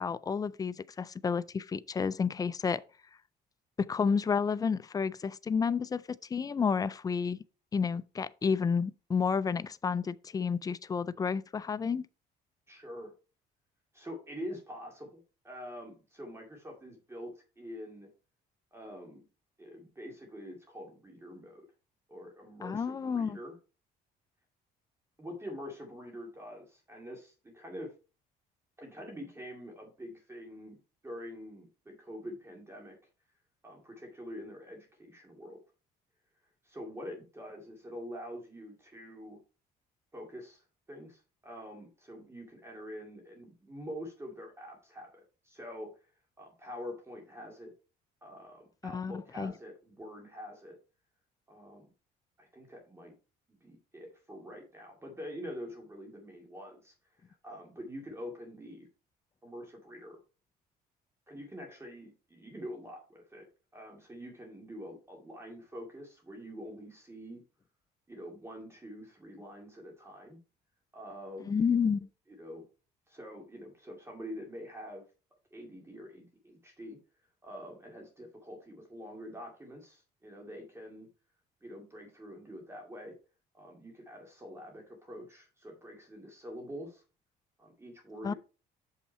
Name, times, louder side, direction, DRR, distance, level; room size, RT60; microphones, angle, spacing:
voice 1, 0.0-2.8 3.8-7.4 7.7-12.1 22.6-23.4 48.8-49.5 71.5-72.1 88.2-88.3, left 6 dB, 20° left, 0.4 m, -30 dB
voice 2, 12.7-13.1 13.9-18.1 18.7-19.2 19.6-21.7 22.1-23.5 25.2-27.9 28.8-30.8 31.0-33.0 33.6-35.6 36.6-39.4 40.1-45.9 46.4-47.7 48.2-50.8 51.5-51.9 52.4-53.1 53.5-56.9 57.4-58.9 59.4-60.2 61.3-63.4 63.7-67.4 68.1-70.4 70.9-71.6 72.4-72.6 73.1-75.0 75.5-77.0 77.4-81.1 81.6-83.1 83.5-87.0 87.6-88.3, equal, 15° right, 2.3 m, -45 dB
6.7 x 5.6 x 4.3 m
cardioid pair, 110°, 17 cm